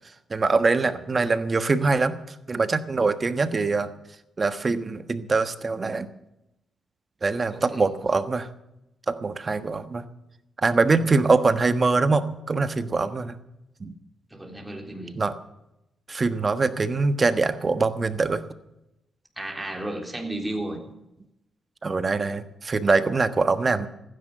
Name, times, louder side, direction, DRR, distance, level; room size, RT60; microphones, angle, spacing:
voice 1, 0.3-3.9 4.4-6.1 7.2-8.5 9.1-10.0 10.6-13.4 13.8-13.9 15.1-15.4 16.1-18.4 21.8-23.9, right 3 dB, 35° right, 11 dB, 1.3 m, -23 dB
voice 2, 7.5-7.9 10.9-11.1 14.3-15.2 19.4-20.8, right 1 dB, 10° right, 2 dB, 3.7 m, -34 dB
15.5 x 10.5 x 7.9 m, 0.88 s
cardioid pair, 85°, 0 cm